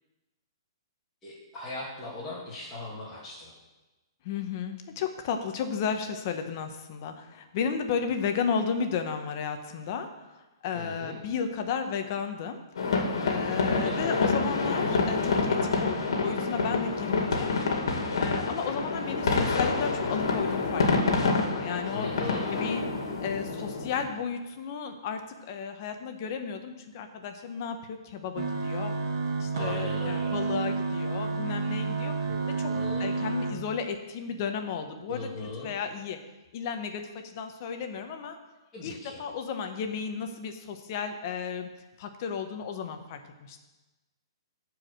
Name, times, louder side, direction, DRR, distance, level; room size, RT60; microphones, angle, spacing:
voice 1, 1.2-3.5 10.7-11.2 13.6-14.2 21.9-22.5 29.5-30.5 32.3-33.2 35.1-35.7 38.7-39.2, left 2 dB, 10° left, -10 dB, 2.7 m, -39 dB
voice 2, 4.2-10.1 10.6-12.6 12.8-17.5 18.2-20.8 21.1-22.1 22.5-28.9 29.4-32.1 32.6-32.7 33.0-35.3 35.6-36.2 36.5-38.4 38.8-41.7 42.0-43.6, left 6 dB, 40° left, 7 dB, 1.1 m, -33 dB
sound 1, 12.8-24.0, left 3 dB, 80° left, 2.0 m, -27 dB
sound 2, 28.4-33.5, right 4 dB, 55° right, 1.5 m, -30 dB
13.5 x 4.9 x 6.6 m, 1.1 s
hypercardioid pair, 160°, 3 cm